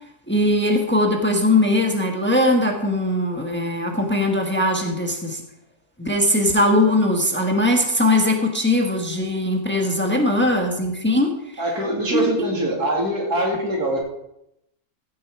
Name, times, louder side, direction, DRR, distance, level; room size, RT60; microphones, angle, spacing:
voice 1, 0.3-5.4 6.0-11.6 12.1-12.3, left 1 dB, 10° left, 2 dB, 1.4 m, -20 dB
voice 2, 11.6-14.0, right 1 dB, 90° right, -1 dB, 3.4 m, -23 dB
15.0 x 7.4 x 4.7 m, 0.82 s
omnidirectional pair, 1.6 m